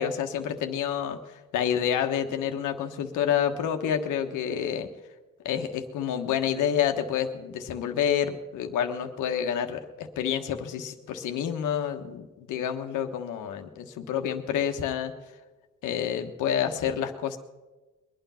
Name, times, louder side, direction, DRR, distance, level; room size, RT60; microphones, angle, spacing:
voice 1, 0.0-4.9 5.4-15.1 15.8-17.4, left 9 dB, 85° left, 6 dB, 1.4 m, -28 dB
22.5 x 9.4 x 5.7 m, 1.2 s
cardioid pair, 90°, 30 cm